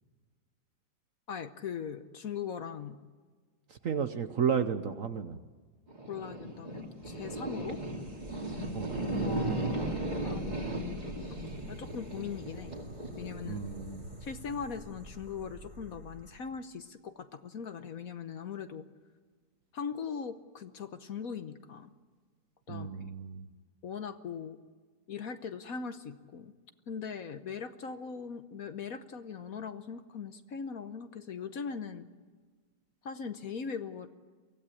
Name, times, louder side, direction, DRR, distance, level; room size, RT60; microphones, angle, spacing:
voice 1, 1.3-3.0 6.1-7.8 9.2-11.4 11.7-12.7 13.2-13.6 14.2-18.8 19.7-21.9 22.7-23.1 23.8-24.6 25.1-26.5 26.9-32.1 33.0-34.1, left 6 dB, 55° left, 10 dB, 1.2 m, -40 dB
voice 2, 3.8-5.4 8.7-9.0 13.4-14.1 22.7-23.5, right 7 dB, 55° right, 9 dB, 1.1 m, -32 dB
sound 1, 5.9-16.3, right 1 dB, 20° right, 2.6 m, -37 dB
24.0 x 16.5 x 8.5 m, 1.4 s
omnidirectional pair, 2.0 m